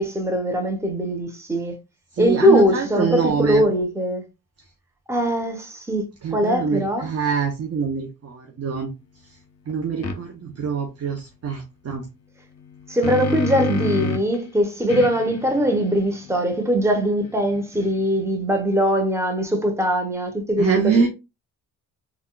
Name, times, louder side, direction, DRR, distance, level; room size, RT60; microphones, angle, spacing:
voice 1, 0.0-1.8 2.2-4.2 5.1-6.1 6.3-7.1 12.9-21.1, equal, 5° right, 0.9 m, -21 dB
voice 2, 2.1-3.6 6.2-8.9 9.7-12.1 20.6-21.1, right 5 dB, 40° right, 0.8 m, -24 dB
sound 1, 10.0-10.2 12.6-14.4 14.9-18.2, left 3 dB, 40° left, 0.7 m, -29 dB
3.5 x 2.4 x 2.3 m
supercardioid pair, 50°, 39 cm